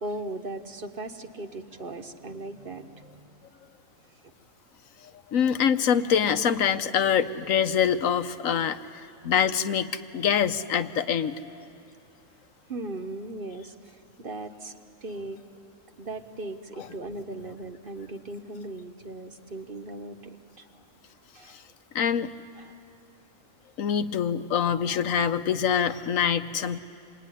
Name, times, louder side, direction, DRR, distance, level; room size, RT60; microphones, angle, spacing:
voice 1, 0.0-3.3 12.7-14.7 15.0-15.4 16.0-20.6 21.3-21.6 22.6-22.7, right 2 dB, 45° right, 7 dB, 1.2 m, -38 dB
voice 2, 5.3-8.8 9.2-11.7 21.9-22.3 23.8-26.8, left 8 dB, 90° left, 10 dB, 1.3 m, -25 dB
26.5 x 21.0 x 10.0 m, 2.6 s
omnidirectional pair, 1.4 m